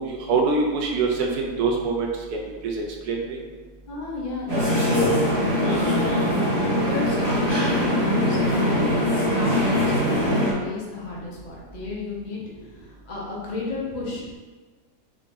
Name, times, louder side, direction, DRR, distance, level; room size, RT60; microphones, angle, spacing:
voice 1, 0.0-2.1 3.1-3.4, right 4 dB, 75° right, 0 dB, 1.3 m, -24 dB
voice 2, 3.9-6.3 6.8-8.8 9.1-14.4, left 3 dB, 35° left, -5 dB, 0.9 m, -33 dB
sound 1, 4.5-10.5, left 1 dB, 35° right, 1.3 m, -22 dB
4.9 x 2.9 x 3.7 m, 1.4 s
omnidirectional pair, 1.7 m